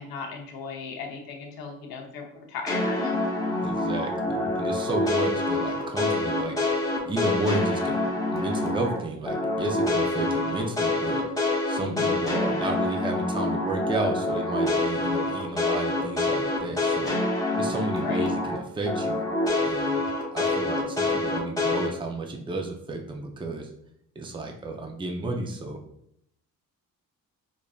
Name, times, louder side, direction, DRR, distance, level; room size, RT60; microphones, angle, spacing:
voice 1, 0.0-3.2 11.8-12.2 18.0-18.3, left 4 dB, 90° left, 2 dB, 0.8 m, -36 dB
sound 1, 2.7-9.0 9.3-18.6 18.9-21.9, left 2 dB, 10° left, 0.9 m, -26 dB
voice 2, 3.6-6.6 7.1-8.0 8.3-11.2 11.7-17.1 17.6-19.2 19.6-20.0 20.3-23.7 24.2-25.8, right 2 dB, 15° right, 2 dB, 0.5 m, -32 dB
5.1 x 2.5 x 2.3 m, 0.73 s
cardioid pair, 105°, 35 cm